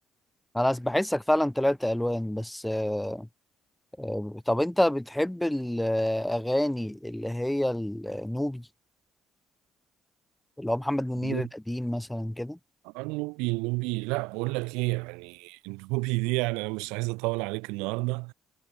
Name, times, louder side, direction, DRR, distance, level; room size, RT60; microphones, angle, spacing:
voice 1, 0.5-3.3 4.0-8.6 10.6-12.6, left 1 dB, 5° left, 0.4 m, -28 dB
voice 2, 11.2-11.5 12.8-18.3, right 28 dB, 90° right, 0.8 m, -30 dB
supercardioid pair, 75°, 0 cm